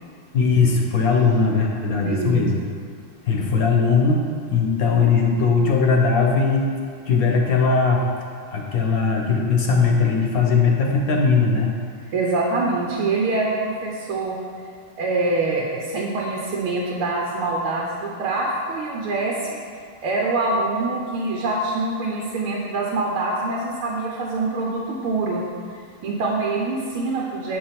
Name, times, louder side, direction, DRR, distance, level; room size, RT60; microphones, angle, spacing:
voice 1, 0.3-2.6 3.3-4.2 4.5-6.7 7.1-8.0 8.5-11.7, left 4 dB, 55° left, 0 dB, 1.1 m, -19 dB
voice 2, 2.0-2.5 12.1-14.4 15.0-19.6 20.0-25.4 26.0-27.6, right 3 dB, 85° right, -3 dB, 1.8 m, -24 dB
8.7 x 5.0 x 5.8 m, 2.3 s
omnidirectional pair, 2.3 m